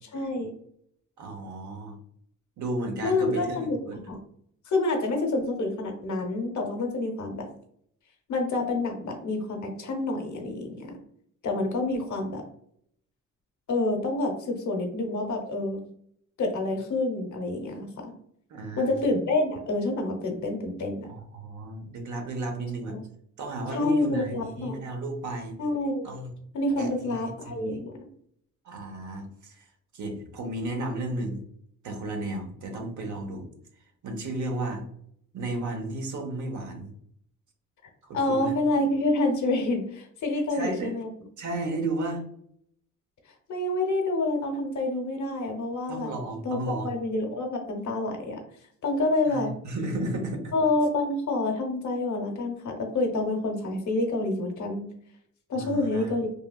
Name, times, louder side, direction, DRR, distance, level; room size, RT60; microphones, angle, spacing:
voice 1, 0.1-0.5 3.0-4.2 4.7-7.5 8.3-11.0 11.4-12.4 13.7-15.8 16.4-18.1 18.8-21.1 22.9-23.0 23.7-24.8 25.6-26.1 26.5-28.1 38.1-41.1 43.5-46.1 46.4-46.6 46.8-48.4 48.8-49.6 50.5-54.9 55.5-56.3, left 2 dB, 65° left, 2 dB, 0.8 m, -28 dB
voice 2, 1.2-2.0 2.6-4.1 18.5-19.0 21.0-23.0 23.4-25.6 26.0-26.3 26.8-27.8 28.6-29.7 29.9-31.4 31.8-33.5 34.0-34.8 35.3-36.9 38.0-38.5 40.5-40.9 41.4-42.2 45.9-46.9 49.3-50.5 55.5-56.1, right 2 dB, 65° right, 3 dB, 0.8 m, -33 dB
3.3 x 2.3 x 2.2 m, 0.67 s
cardioid pair, 125°, 32 cm